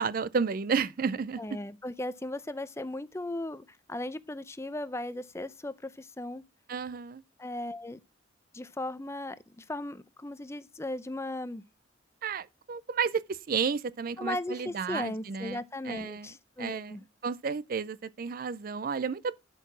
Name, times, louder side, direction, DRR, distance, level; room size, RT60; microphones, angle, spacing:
voice 1, 0.0-1.4 6.7-7.2 12.2-16.3 16.6-17.0 17.2-19.4, right 5 dB, 45° right, 0.4 m, -32 dB
voice 2, 1.4-6.4 7.4-8.0 8.5-11.6 14.2-17.0, left 1 dB, 15° left, 0.5 m, -37 dB
12.0 x 4.6 x 6.0 m
head